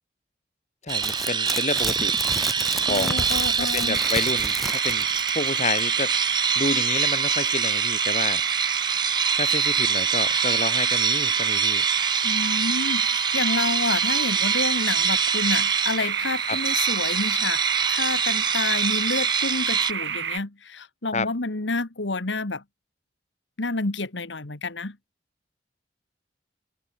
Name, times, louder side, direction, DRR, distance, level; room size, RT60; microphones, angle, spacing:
voice 1, 0.8-2.1 2.8-3.2 3.6-5.1 5.3-8.4 9.4-11.9 16.5-16.6 21.1-21.3, left 3 dB, 40° left, 2.7 m, -29 dB
sound 1, 0.9-5.5 5.8-5.9, equal, ahead, 1.3 m, -32 dB
sound 2, 0.9-19.9, right 6 dB, 25° right, 1.5 m, -25 dB
voice 2, 2.8-4.0 12.2-17.6 17.9-22.6 23.6-25.0, left 3 dB, 90° left, 1.8 m, -29 dB
sound 3, 3.9-20.4, right 7 dB, 80° right, 4.4 m, -29 dB
head